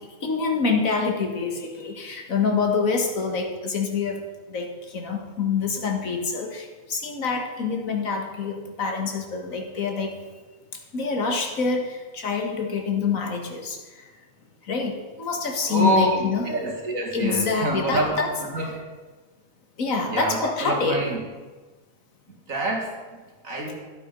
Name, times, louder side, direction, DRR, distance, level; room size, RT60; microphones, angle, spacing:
voice 1, 0.2-4.2 4.5-4.7 4.9-10.1 10.9-13.8 14.7-14.9 15.2-16.5 17.1-18.4 19.8-21.0, left 5 dB, 90° left, 3 dB, 1.9 m, -26 dB
voice 2, 15.7-18.1 18.5-18.7 20.1-21.2 22.5-23.8, right 1 dB, 85° right, -1 dB, 2.7 m, -26 dB
11.5 x 8.5 x 5.2 m, 1.3 s
omnidirectional pair, 1.4 m